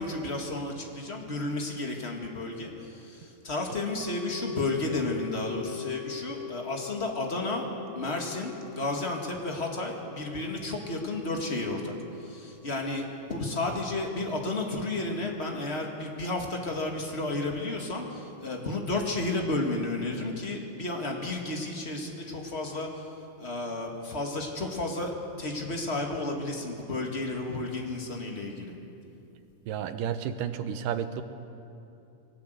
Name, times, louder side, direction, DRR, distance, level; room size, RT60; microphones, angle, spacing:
voice 1, 0.0-7.6 7.9-11.9 12.2-23.0 23.4-25.1 25.4-28.7, left 2 dB, 25° left, 1 dB, 1.7 m, -32 dB
sound 1, 4.0-14.3 14.5-14.6, left 10 dB, 40° right, 2.5 m, -43 dB
voice 2, 29.7-31.2, right 8 dB, 90° right, 10 dB, 2.6 m, -31 dB
21.5 x 18.5 x 8.1 m, 2.7 s
omnidirectional pair, 3.7 m